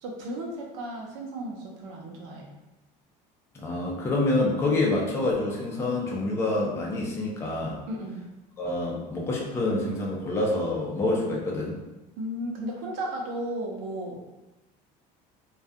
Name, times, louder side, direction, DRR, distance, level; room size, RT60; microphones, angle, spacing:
voice 1, 0.0-2.5 7.9-8.2 11.2-11.3 12.2-14.3, right 1 dB, 85° right, -2 dB, 0.7 m, -34 dB
voice 2, 3.5-7.8 8.6-11.7, left 2 dB, 15° left, -3 dB, 0.4 m, -27 dB
2.3 x 2.2 x 2.6 m, 1.0 s
cardioid pair, 145°, 17 cm